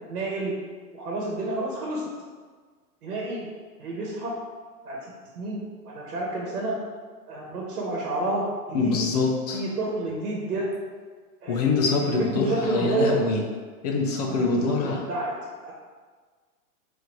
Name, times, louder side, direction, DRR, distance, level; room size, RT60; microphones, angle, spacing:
voice 1, 0.1-0.5 0.9-2.0 3.0-3.4 3.8-4.3 4.8-5.0 5.3-5.6 5.8-6.7 7.3-8.4 8.7-9.0 9.5-10.7 11.4-13.2 14.2-15.3 15.6-15.7, right 2 dB, 80° right, -3 dB, 1.4 m, -29 dB
voice 2, 8.7-9.6 11.5-13.4 13.8-15.0, left 4 dB, 30° left, 1 dB, 0.4 m, -24 dB
4.5 x 2.7 x 4.4 m, 1.5 s
hypercardioid pair, 135°, 46 cm